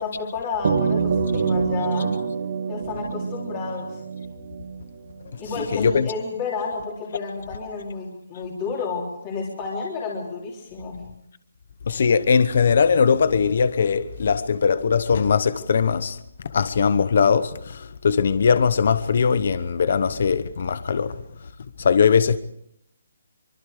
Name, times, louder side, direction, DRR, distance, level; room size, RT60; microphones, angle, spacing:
voice 1, 0.0-2.2 2.7-3.9 5.4-11.0, left 4 dB, 20° left, 3.5 m, -31 dB
sound 1, 0.6-5.3, right 6 dB, 40° right, 2.2 m, -26 dB
voice 2, 5.6-6.1 11.9-21.2 21.8-22.4, left 6 dB, 45° left, 0.9 m, -20 dB
25.0 x 24.5 x 5.0 m
hypercardioid pair, 175°, 0 cm